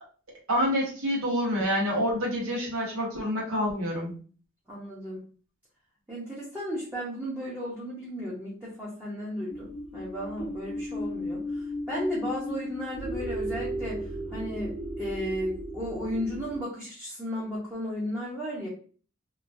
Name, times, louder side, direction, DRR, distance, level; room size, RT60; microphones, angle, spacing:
voice 1, 0.5-4.1, equal, 75° right, -3 dB, 1.2 m, -27 dB
voice 2, 4.7-5.2 6.1-11.4 11.9-14.0 14.3-18.7, equal, 10° right, -7 dB, 0.8 m, -34 dB
sound 1, 9.5-16.6, equal, 60° left, 0.9 m, -35 dB
3.0 x 2.3 x 2.6 m, 0.41 s
head